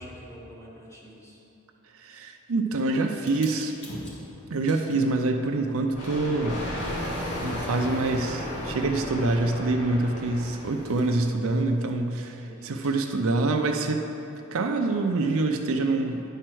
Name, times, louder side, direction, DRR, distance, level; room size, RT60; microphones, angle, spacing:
voice 1, 0.0-1.4 12.4-12.8, equal, 15° left, -4 dB, 1.5 m, -46 dB
voice 2, 2.0-3.7 4.5-6.6 7.4-14.0 14.5-16.2, right 2 dB, 65° right, 4 dB, 0.5 m, -26 dB
sound 1, 3.2-12.2 12.6-15.3, left 1 dB, 55° left, 2.0 m, -48 dB
Thunder, 5.9-11.3, left 1 dB, 80° left, 2.0 m, -34 dB
9.9 x 4.5 x 6.2 m, 2.9 s
head